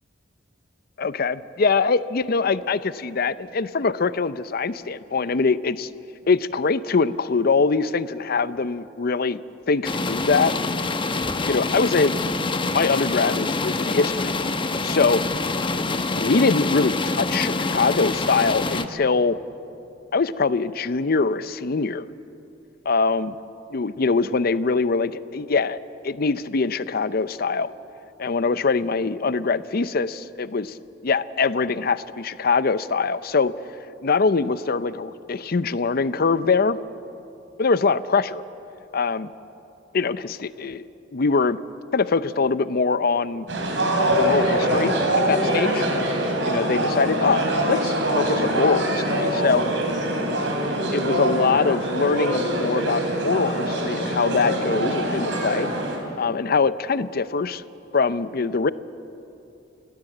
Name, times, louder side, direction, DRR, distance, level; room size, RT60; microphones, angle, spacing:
voice 1, 1.0-5.9 6.3-9.4 9.7-10.5 11.4-12.2 12.7-14.3 14.8-15.2 16.2-19.4 20.1-22.1 22.9-23.4 23.7-25.8 26.0-27.7 28.2-30.8 31.0-33.5 34.0-36.8 37.6-38.4 38.9-39.3 39.9-41.6 41.9-43.5 44.2-44.9 45.3-45.9 46.5-49.7 50.7-55.7 56.2-57.6 57.9-58.7, left 4 dB, 55° left, 15 dB, 0.6 m, -23 dB
sound 1, 9.8-18.9, left 3 dB, 25° left, 0.9 m, -26 dB
sound 2, 43.5-56.0, right 1 dB, 75° right, 4.0 m, -24 dB
29.0 x 17.5 x 7.8 m, 2.8 s
head